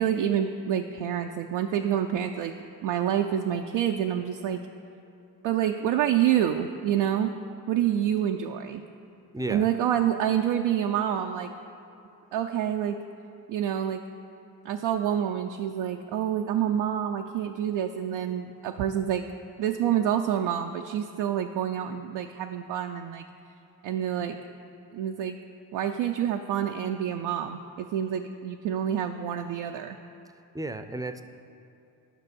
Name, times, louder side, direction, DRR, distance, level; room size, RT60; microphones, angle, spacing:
voice 1, 0.0-2.5 2.8-4.6 5.4-7.3 7.7-8.8 9.5-11.5 12.3-13.0 13.5-14.0 14.6-19.3 19.6-23.3 23.8-24.4 24.9-25.4 25.7-30.0, right 10 dB, 70° right, 3 dB, 0.6 m, -27 dB
voice 2, 9.3-9.7 30.5-31.2, right 2 dB, 10° right, 9 dB, 0.6 m, -33 dB
11.0 x 6.0 x 5.3 m, 2.7 s
hypercardioid pair, 40°, 46 cm